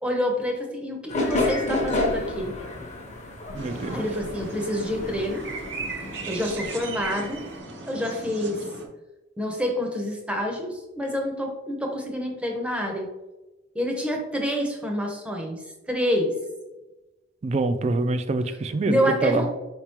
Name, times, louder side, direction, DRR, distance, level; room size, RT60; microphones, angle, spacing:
voice 1, 0.0-2.5 3.9-5.4 6.3-7.4 7.9-8.6 9.4-13.1 13.7-15.6 15.9-16.3 18.8-19.5, equal, 5° right, 1 dB, 0.7 m, -27 dB
sound 1, 1.1-7.6, left 2 dB, 40° left, 0.9 m, -31 dB
voice 2, 3.5-4.0 17.4-19.0 19.2-19.5, right 3 dB, 35° right, 10 dB, 0.3 m, -25 dB
sound 2, 3.5-8.9, right 3 dB, 65° right, 0.8 m, -36 dB
4.8 x 3.5 x 2.9 m, 1.0 s
head